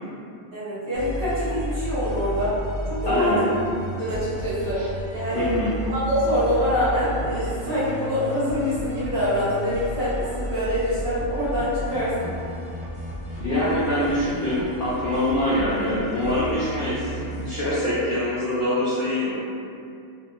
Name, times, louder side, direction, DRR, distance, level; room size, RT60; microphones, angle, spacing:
voice 1, 0.5-2.6 2.8-3.5 3.9-4.8 5.1-5.5 5.9-12.3 17.8-18.0, equal, 45° right, -11 dB, 0.8 m, -25 dB
sound 1, 0.9-18.4, equal, 35° left, 0.6 m, -33 dB
voice 2, 3.1-3.4 4.7-4.9 5.3-5.7 13.4-19.4, left 1 dB, 75° left, -10 dB, 0.5 m, -24 dB
2.5 x 2.1 x 2.8 m, 2.4 s
omnidirectional pair, 1.5 m